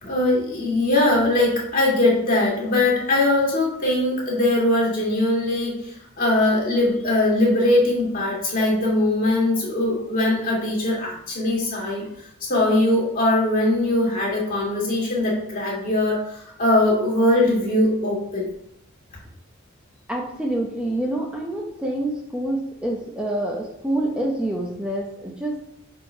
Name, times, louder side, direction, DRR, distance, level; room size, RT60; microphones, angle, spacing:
voice 1, 0.0-12.1 12.4-18.5, left 1 dB, 45° left, -3 dB, 2.3 m, -21 dB
voice 2, 20.1-25.6, right 1 dB, 5° right, -2 dB, 0.7 m, -27 dB
5.2 x 4.5 x 5.5 m, 0.77 s
head